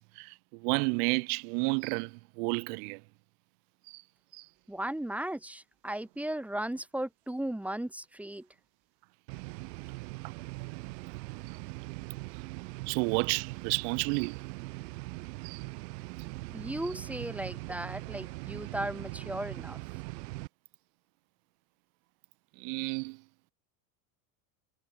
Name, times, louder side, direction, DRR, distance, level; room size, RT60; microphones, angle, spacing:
voice 1, 0.0-3.0 3.9-4.0 4.3-4.5 10.2-10.3 12.9-14.4 15.4-15.6 22.6-23.2, right 40 dB or more, 65° right, 0.8 m, -31 dB
voice 2, 4.7-8.5 16.5-19.8, right 1 dB, 5° right, 1.1 m, -36 dB
sound 1, 9.3-20.5, right 24 dB, 85° right, 1.5 m, -41 dB
supercardioid pair, 135°, 48 cm